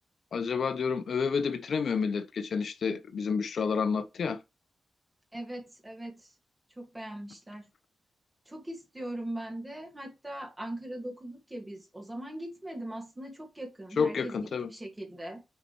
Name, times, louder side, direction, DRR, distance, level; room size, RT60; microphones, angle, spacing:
voice 1, 0.3-4.4 14.0-14.7, left 5 dB, 60° left, 0.6 m, -29 dB
voice 2, 5.3-6.3 6.8-7.7 8.5-15.4, right 1 dB, 15° right, 1.7 m, -40 dB
6.6 x 5.1 x 3.0 m
wide cardioid pair, 180°, 0 cm